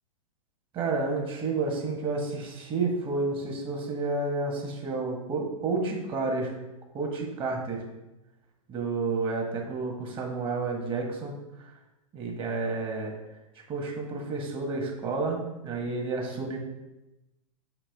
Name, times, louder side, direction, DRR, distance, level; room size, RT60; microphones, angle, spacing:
voice 1, 0.7-6.5 6.9-7.8 8.7-11.4 12.1-13.1 13.7-16.6, right 3 dB, 30° right, 1 dB, 1.5 m, -30 dB
7.2 x 4.9 x 3.5 m, 0.98 s
hypercardioid pair, 120°, 18 cm